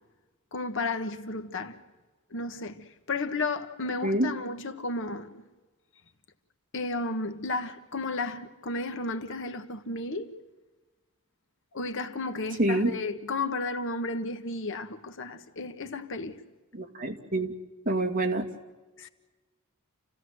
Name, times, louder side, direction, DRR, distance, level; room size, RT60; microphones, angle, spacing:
voice 1, 0.5-1.8 2.3-5.4 6.7-10.3 11.7-16.4 19.0-19.1, left 3 dB, 60° left, 1.5 m, -33 dB
voice 2, 12.6-12.9 16.7-17.5 17.9-18.5, right 1 dB, 40° right, 2.7 m, -26 dB
29.0 x 16.0 x 8.0 m
head